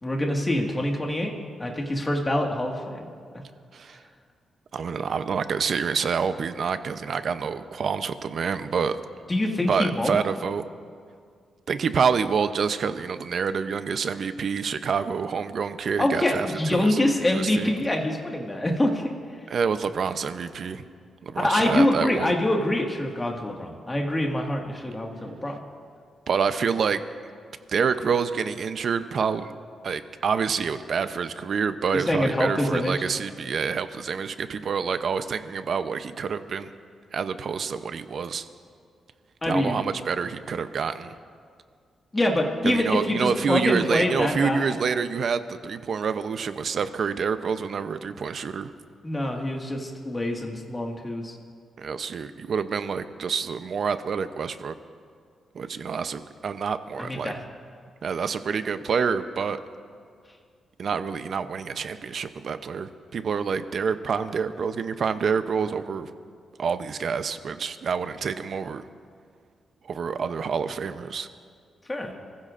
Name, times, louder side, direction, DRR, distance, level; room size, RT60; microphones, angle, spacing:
voice 1, 0.0-1.3 1.6-3.1 9.3-10.2 16.0-19.0 21.4-25.5 31.9-33.1 39.4-39.8 42.1-44.7 49.0-51.4 57.0-57.4 71.9-72.1, left 1 dB, 20° left, 1 dB, 1.8 m, -25 dB
voice 2, 4.7-9.0 9.7-10.6 11.7-17.0 17.3-17.7 19.5-20.8 21.2-22.3 26.3-27.0 27.7-29.5 29.8-36.7 37.1-38.5 39.4-41.1 42.6-48.7 51.8-54.7 55.5-57.3 58.0-59.6 60.8-66.1 66.6-68.8 69.9-71.3, right 6 dB, 55° right, 10 dB, 0.6 m, -27 dB
28.5 x 15.0 x 2.5 m, 2.1 s
cardioid pair, 130°, 0 cm